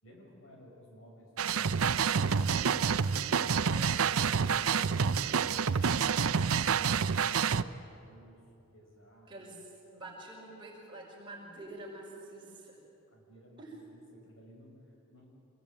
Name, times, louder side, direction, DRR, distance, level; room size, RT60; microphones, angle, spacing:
voice 1, 0.0-2.9 8.7-9.4 13.1-15.2, equal, 65° left, 0 dB, 6.3 m, -58 dB
sound 1, 1.4-7.6, right 6 dB, 85° right, 0.6 m, -28 dB
voice 2, 9.3-12.8 13.6-13.8, right 2 dB, 20° right, -3 dB, 5.9 m, -47 dB
26.0 x 21.0 x 9.1 m, 2.8 s
head